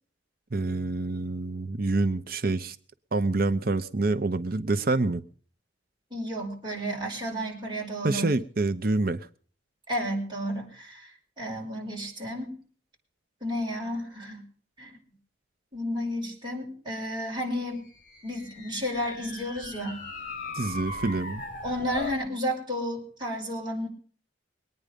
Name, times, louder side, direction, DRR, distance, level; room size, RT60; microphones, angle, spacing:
voice 1, 0.5-2.8 3.1-5.2 8.0-9.3 20.5-21.4, right 2 dB, 50° right, 11 dB, 0.8 m, -27 dB
voice 2, 6.1-8.3 9.9-11.1 11.4-12.6 13.4-14.4 14.8-15.0 15.7-17.9 18.2-20.0 21.6-23.9, equal, 25° right, -2 dB, 5.3 m, -32 dB
sound 1, 17.8-22.2, left 2 dB, 45° left, 2.7 m, -39 dB
23.0 x 9.6 x 5.2 m, 0.43 s
head